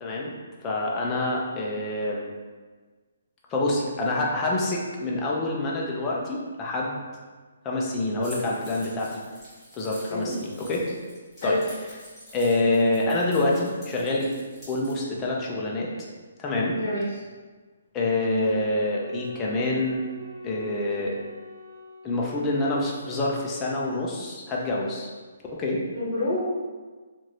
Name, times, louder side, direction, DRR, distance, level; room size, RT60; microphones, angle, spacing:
voice 1, 0.0-0.3 0.6-2.3 3.5-7.0 7.6-9.2 9.8-10.8 11.4-11.6 12.3-14.3 14.7-15.9 16.4-16.7 17.9-20.0 20.4-21.2 22.0-25.1 25.5-25.8, left 2 dB, 20° left, -3 dB, 0.5 m, -26 dB
Keys jangling, 8.2-14.9, equal, ahead, 1.3 m, -47 dB
voice 2, 16.7-17.2 25.9-26.6, left 1 dB, 55° left, -5 dB, 0.9 m, -28 dB
Wind instrument woodwind instrument, 18.4-22.8, equal, 65° right, 0.6 m, -44 dB
3.0 x 2.5 x 2.8 m, 1.4 s
hypercardioid pair, 155°, 0 cm